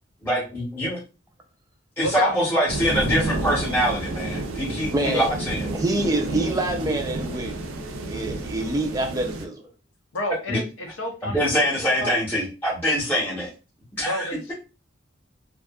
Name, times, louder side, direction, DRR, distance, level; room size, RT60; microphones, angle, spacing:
voice 1, 0.2-1.0 2.0-5.7 10.5-10.6 11.2-13.5 14.0-14.3, equal, 10° left, -5 dB, 0.8 m, -24 dB
voice 2, 2.0-2.4 5.0-5.2 10.1-12.1 14.0-14.5, left 1 dB, 70° left, 3 dB, 0.6 m, -30 dB
sound 1, 2.7-9.5, right 2 dB, 90° right, 0.5 m, -30 dB
voice 3, 4.9-5.3 5.7-7.8 8.1-9.6, right 2 dB, 15° right, 4 dB, 0.4 m, -26 dB
2.6 x 2.3 x 2.3 m, 0.32 s
head